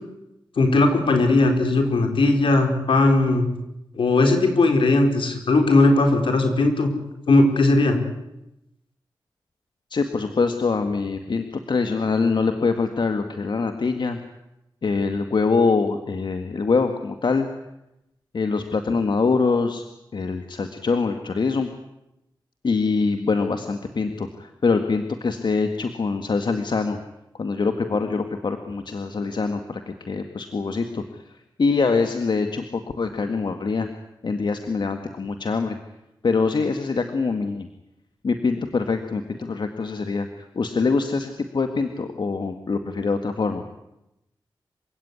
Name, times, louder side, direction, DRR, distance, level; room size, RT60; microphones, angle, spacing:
voice 1, 0.6-3.5 3.9-6.9 7.3-8.0, left 2 dB, 80° left, 5 dB, 4.6 m, -18 dB
voice 2, 9.9-14.2 14.8-17.5 18.3-19.8 20.1-21.7 22.6-27.0 27.4-31.0 31.6-33.9 34.2-35.8 36.2-37.7 38.2-40.3 40.6-43.6, left 4 dB, 60° left, 7 dB, 1.9 m, -24 dB
27.0 x 17.0 x 9.7 m, 0.89 s
cardioid pair, 70°, 9 cm